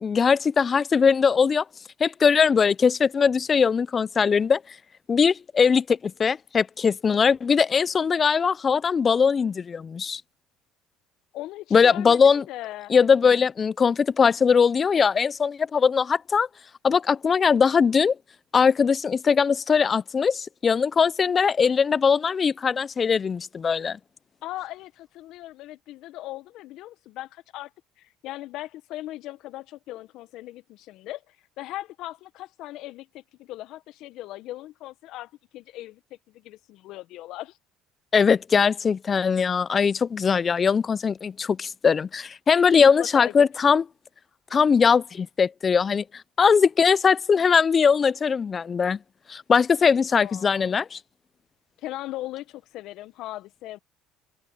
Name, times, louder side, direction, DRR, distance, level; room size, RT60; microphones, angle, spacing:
voice 1, 0.0-1.6 2.0-4.6 5.1-10.2 11.7-12.4 12.9-16.5 16.8-18.2 18.5-24.0 38.1-43.8 44.5-46.0 46.4-49.0 49.3-51.0, left 6 dB, 35° left, 0.8 m, -20 dB
voice 2, 11.3-12.9 24.4-27.7 28.0-37.6 42.8-43.4 50.1-50.7 51.8-53.8, left 16 dB, 65° left, 1.5 m, -39 dB
hypercardioid pair, 70°, 0 cm